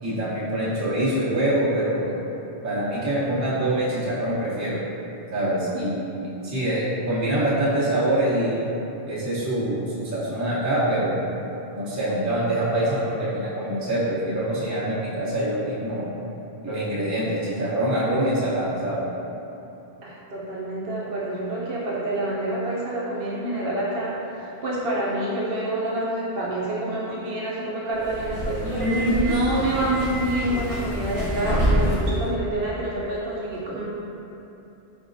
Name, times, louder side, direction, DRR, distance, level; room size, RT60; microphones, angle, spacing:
voice 1, 0.0-2.1 2.6-4.8 5.3-8.6 9.1-11.2 11.7-16.0 16.6-19.0 28.7-28.8, right 1 dB, 20° right, -9 dB, 0.5 m, -25 dB
voice 2, 20.0-33.8, right 1 dB, 65° right, -6 dB, 0.7 m, -27 dB
Subway metro underground, 27.9-32.2, equal, 45° left, 1.1 m, -25 dB
3.9 x 2.2 x 2.5 m, 3.0 s
omnidirectional pair, 1.0 m